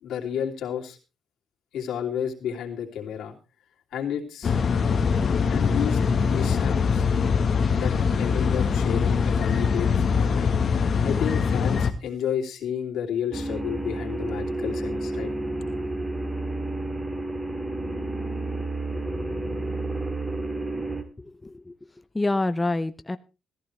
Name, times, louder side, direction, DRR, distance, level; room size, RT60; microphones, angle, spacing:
voice 1, 0.0-1.0 1.7-3.3 3.9-4.5 5.5-6.0 6.2-7.1 7.7-10.5 11.0-15.3, left 8 dB, 85° left, 0 dB, 2.8 m, -31 dB
sound 1, 4.4-11.9, left 5 dB, 50° left, 1.3 m, -23 dB
sound 2, 13.3-21.0, right 2 dB, 15° right, 2.0 m, -30 dB
voice 2, 21.0-21.7 22.1-23.2, left 2 dB, 15° left, 11 dB, 0.6 m, -27 dB
15.5 x 14.0 x 3.2 m, 0.30 s
cardioid pair, 100°, 0 cm